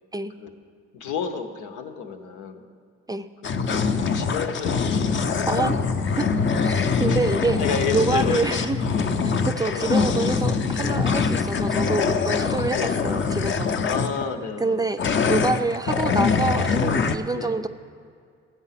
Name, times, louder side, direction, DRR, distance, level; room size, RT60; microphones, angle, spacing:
voice 1, 0.9-2.7 3.4-3.5 4.1-5.8 7.0-8.6 9.7-9.9 12.7-13.0 13.8-14.9 17.3-17.6, left 6 dB, 90° left, 6 dB, 1.0 m, -31 dB
sound 1, 3.4-14.2 15.0-17.2, left 5 dB, 40° left, 0.6 m, -23 dB
voice 2, 5.5-5.8 6.2-6.3 6.6-7.6 7.9-8.8 9.2-13.7 14.6-17.7, right 3 dB, 15° right, 9 dB, 0.4 m, -26 dB
14.0 x 8.2 x 5.8 m, 2.2 s
cardioid pair, 90°, 30 cm